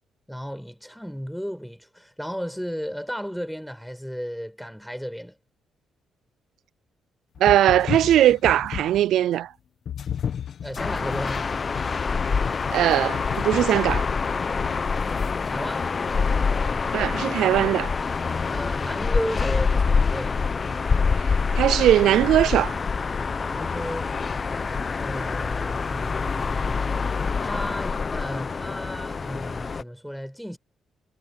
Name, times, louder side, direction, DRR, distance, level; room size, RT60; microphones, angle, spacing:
voice 1, 0.3-5.4 10.6-11.5 15.4-15.9 18.4-20.4 23.2-26.8 27.4-30.6, equal, ahead, 6.0 m, -34 dB
sound 1, 7.4-9.1 9.9-15.3, left 8 dB, 60° left, 1.6 m, -34 dB
voice 2, 7.4-9.5 12.7-14.0 16.9-17.9 21.2-22.8, right 12 dB, 80° right, 0.4 m, -20 dB
sound 2, 10.8-29.8, left 5 dB, 35° left, 1.1 m, -26 dB
cardioid pair, 90°, 0 cm